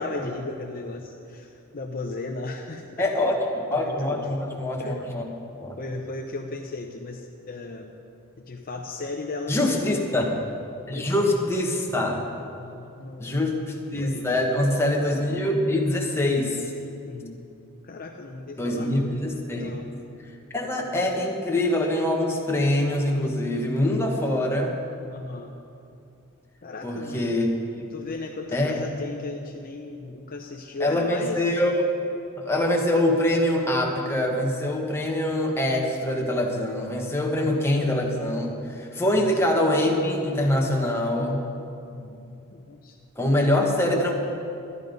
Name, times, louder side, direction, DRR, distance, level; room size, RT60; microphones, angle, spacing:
voice 1, 0.0-3.1 3.7-4.5 4.8-5.2 5.8-7.9 8.5-10.1 10.9-11.4 12.6-13.5 13.9-14.3 17.1-17.5 17.8-19.1 19.5-19.9 25.1-25.6 26.6-27.4 27.9-31.5 37.3-37.6 39.1-39.3 41.9-43.0, left 3 dB, 40° left, 2 dB, 0.7 m, -36 dB
voice 2, 3.0-5.3 5.6-5.8 9.5-10.3 10.9-12.2 13.2-16.6 18.6-19.9 20.5-24.7 26.8-27.5 28.5-28.8 30.8-31.8 32.4-41.4 43.2-44.1, left 1 dB, 10° left, -1 dB, 1.4 m, -24 dB
12.5 x 11.0 x 5.3 m, 2.6 s
head